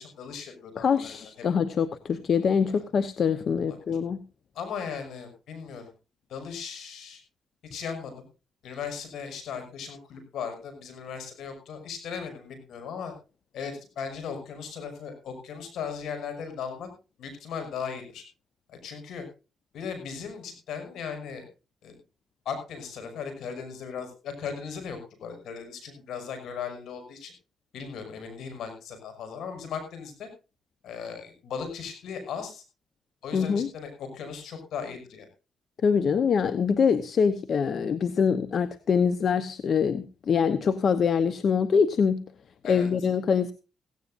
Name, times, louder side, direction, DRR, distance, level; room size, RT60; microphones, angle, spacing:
voice 1, 0.0-1.2 2.7-2.8 3.7-3.8 4.5-5.9 6.3-7.2 7.7-8.3 8.6-13.1 13.5-16.9 17.2-18.2 18.7-19.3 19.7-21.4 21.8-22.0 22.4-27.3 27.7-30.3 30.8-32.6 33.2-35.3 42.6-42.9, left 6 dB, 75° left, 7 dB, 6.0 m, -37 dB
voice 2, 0.8-4.2 33.3-33.7 35.8-42.2 42.7-43.5, left 6 dB, 55° left, 13 dB, 1.0 m, -24 dB
17.0 x 16.5 x 2.6 m, 0.32 s
cardioid pair, 90°, 0 cm